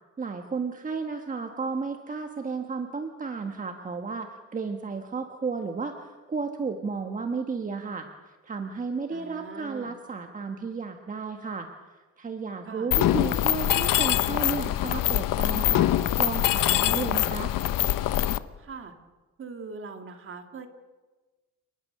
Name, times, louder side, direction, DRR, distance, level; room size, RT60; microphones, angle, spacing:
voice 1, 0.2-11.7 12.2-15.9 16.2-17.5, right 4 dB, 25° right, 5 dB, 1.4 m, -33 dB
voice 2, 9.1-9.9 12.7-12.9 18.6-18.9 19.4-20.7, right 4 dB, 40° right, 6 dB, 2.2 m, -41 dB
Mechanisms, 12.9-18.4, left 13 dB, 90° left, 1.0 m, -24 dB
29.5 x 20.0 x 6.7 m, 1.3 s
cardioid pair, 165°, 32 cm